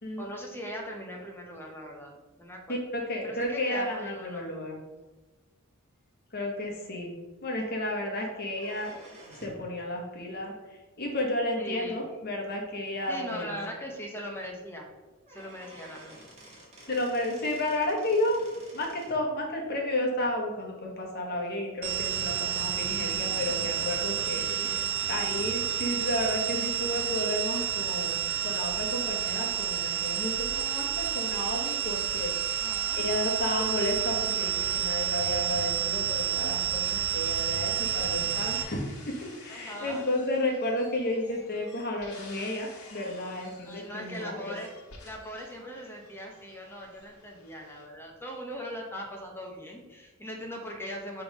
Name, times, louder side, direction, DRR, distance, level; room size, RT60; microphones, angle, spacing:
voice 1, 0.2-2.8 3.2-4.5 11.6-12.0 13.1-14.9 15.3-16.3 24.2-25.0 32.6-33.0 39.5-40.1 43.6-44.7 45.0-51.2, equal, 10° left, 0 dB, 1.0 m, -40 dB
voice 2, 2.7-4.8 6.3-7.1 7.4-8.9 9.4-10.5 11.0-13.5 16.9-18.4 18.7-24.7 25.1-32.6 33.0-44.6, left 1 dB, 50° left, 0 dB, 1.3 m, -32 dB
sound 1, 8.5-9.7 11.5-11.6 12.5-12.6 13.0-13.1 13.4-13.5 14.9-15.0 15.3-19.2, right 1 dB, 30° right, 1.6 m, -50 dB
sound 2, 21.8-38.6, right 10 dB, 75° right, 0.9 m, -30 dB
sound 3, 29.8-47.9, left 3 dB, 90° left, 1.4 m, -52 dB
5.5 x 3.5 x 5.2 m, 1.2 s
head